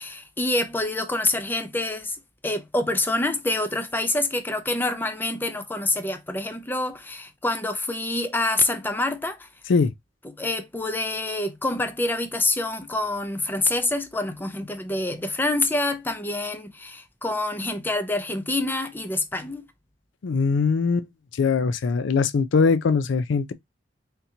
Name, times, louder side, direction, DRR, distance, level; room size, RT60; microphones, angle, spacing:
voice 1, 0.0-2.2 2.4-9.5 10.2-19.7, left 2 dB, 10° left, 0.5 m, -26 dB
voice 2, 20.2-21.1 21.4-23.5, left 5 dB, 80° left, 0.4 m, -21 dB
3.6 x 2.8 x 2.7 m
head